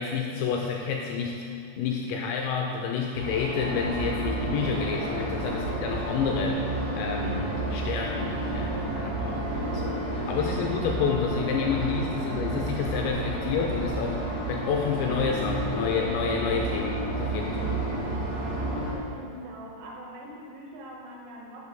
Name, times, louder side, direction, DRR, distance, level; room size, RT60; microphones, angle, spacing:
voice 1, 0.0-1.5 1.8-17.8, left 6 dB, 85° left, 1 dB, 2.6 m, -29 dB
sound 1, 3.1-18.9, right 2 dB, 60° right, 4.1 m, -31 dB
voice 2, 19.1-21.7, right 1 dB, 75° right, -2 dB, 3.4 m, -43 dB
10.5 x 6.8 x 3.6 m, 2.5 s
omnidirectional pair, 5.6 m